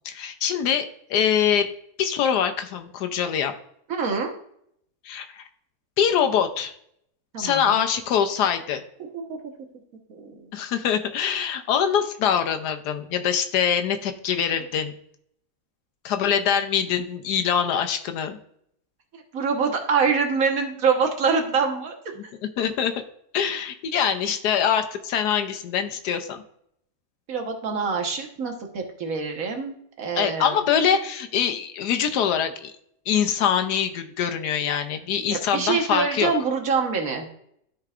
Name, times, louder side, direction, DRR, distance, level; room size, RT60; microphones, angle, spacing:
voice 1, 0.0-1.7 2.0-3.5 5.0-5.4 6.0-6.7 7.4-8.8 10.5-14.9 16.0-18.4 22.2-22.9 23.3-26.4 30.1-32.7 33.1-36.3, left 8 dB, 90° left, 8 dB, 1.3 m, -24 dB
voice 2, 3.9-4.3 7.3-7.8 9.1-9.4 10.1-10.5 19.1-22.0 27.3-30.6 35.3-37.3, right 5 dB, 60° right, 3 dB, 1.6 m, -25 dB
13.5 x 4.7 x 2.4 m, 0.71 s
omnidirectional pair, 1.7 m